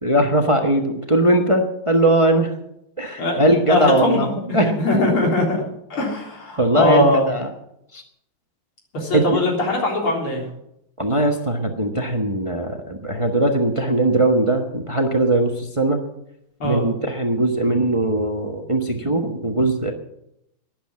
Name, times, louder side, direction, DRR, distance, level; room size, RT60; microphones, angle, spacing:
voice 1, 0.0-2.5 3.0-4.7 6.6-7.5 7.9-8.0 9.1-9.4 11.0-16.0 16.6-19.9, right 1 dB, 20° right, 3 dB, 1.1 m, -20 dB
voice 2, 3.7-5.6 5.9-7.3 8.9-10.4 16.6-16.8, left 1 dB, 90° left, -1 dB, 4.6 m, -21 dB
12.5 x 10.5 x 7.5 m, 0.78 s
omnidirectional pair, 2.3 m